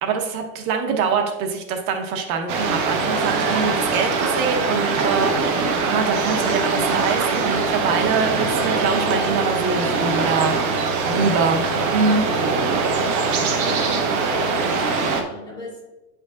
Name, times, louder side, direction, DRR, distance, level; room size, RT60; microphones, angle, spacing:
voice 1, 0.0-10.7 11.1-11.6 11.9-12.3, right 5 dB, 75° right, 4 dB, 1.1 m, -24 dB
sound 1, 2.5-15.2, right 4 dB, 40° right, 0.9 m, -22 dB
voice 2, 13.5-14.2 14.5-15.8, left 2 dB, 10° left, -6 dB, 2.4 m, -40 dB
9.5 x 5.2 x 2.4 m, 1.0 s
supercardioid pair, 150°, 44 cm